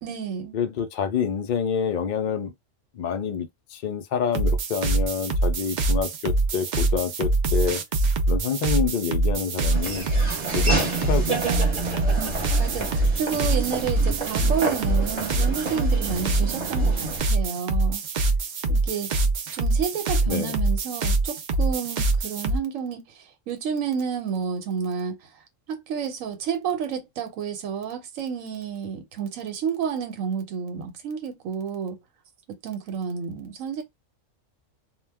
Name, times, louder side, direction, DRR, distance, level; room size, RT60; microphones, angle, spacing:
voice 1, 0.0-0.6 12.2-12.3 12.6-18.0 18.7-19.3 19.5-25.3 25.7-32.0 32.5-33.8, right 7 dB, 90° right, 1.1 m, -30 dB
voice 2, 0.5-2.5 3.0-7.8 8.3-10.1 10.5-11.4 20.3-20.5, left 7 dB, 70° left, 0.4 m, -27 dB
sound 1, 4.3-22.6, right 2 dB, 70° right, 0.4 m, -24 dB
Laughter / Walk footsteps, 9.7-17.2, right 3 dB, 35° right, 0.9 m, -29 dB
2.3 x 2.2 x 3.3 m
omnidirectional pair, 1.3 m